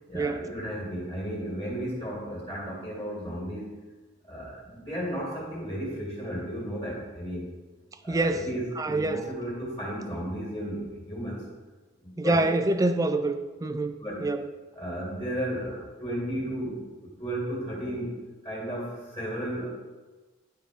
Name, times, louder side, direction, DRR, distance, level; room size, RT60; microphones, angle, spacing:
voice 1, 0.1-3.8 4.2-7.5 8.0-11.5 12.0-12.5 14.0-14.3 14.7-18.2 18.4-19.7, equal, 20° left, -6 dB, 2.1 m, -34 dB
voice 2, 8.1-8.5 8.8-9.2 12.2-14.4, right 2 dB, 15° right, 9 dB, 0.3 m, -26 dB
10.0 x 3.9 x 4.9 m, 1.3 s
head